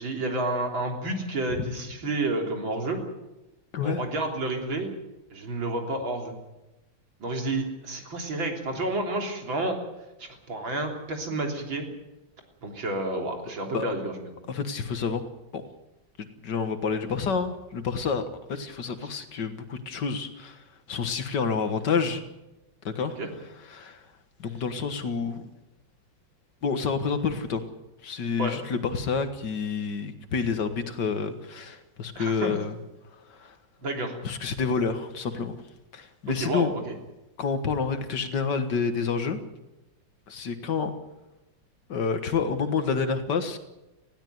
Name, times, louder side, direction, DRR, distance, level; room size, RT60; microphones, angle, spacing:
voice 1, 0.0-3.0 3.8-4.9 5.3-6.3 7.2-9.8 10.2-11.9 12.6-14.2 23.2-23.3 28.4-28.6 32.2-32.6 33.8-34.2 36.4-36.9, right 2 dB, 85° right, 2 dB, 4.2 m, -30 dB
voice 2, 14.5-15.2 15.5-15.6 16.2-18.2 18.5-22.2 23.0-23.2 23.7-24.0 24.4-25.4 26.6-27.6 28.0-32.7 33.3-33.5 34.2-35.6 35.9-36.7 37.4-39.4 40.3-40.9 41.9-43.6, left 5 dB, 65° left, 9 dB, 2.1 m, -28 dB
20.0 x 16.0 x 9.4 m, 0.99 s
omnidirectional pair, 2.1 m